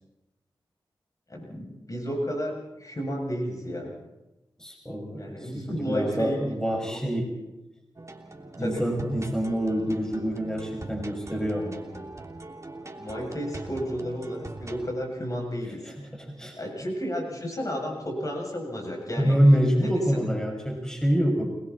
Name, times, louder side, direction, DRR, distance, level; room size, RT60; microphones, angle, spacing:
voice 1, 1.3-3.9 5.2-6.4 6.8-7.0 8.6-8.8 13.0-15.8 16.5-19.4 19.8-19.9, equal, 40° left, 1 dB, 7.8 m, -32 dB
voice 2, 4.6-7.3 8.6-11.8 15.8-16.6 19.2-21.5, equal, 5° left, 2 dB, 6.1 m, -26 dB
sound 1, 8.0-14.9, right 2 dB, 35° right, 3.0 m, -41 dB
30.0 x 20.5 x 4.3 m, 0.98 s
cardioid pair, 40°, 9 cm